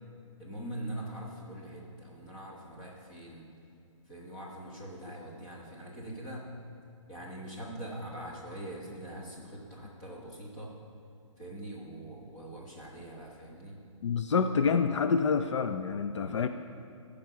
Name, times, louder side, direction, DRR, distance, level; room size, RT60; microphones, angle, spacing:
voice 1, 0.4-3.4 4.1-6.5 7.1-10.7 11.4-13.8 16.1-16.4, right 1 dB, 15° left, -4 dB, 1.0 m, -43 dB
voice 2, 14.0-16.5, left 5 dB, 60° left, 9 dB, 0.4 m, -27 dB
14.0 x 5.1 x 5.6 m, 2.6 s
hypercardioid pair, 180°, 17 cm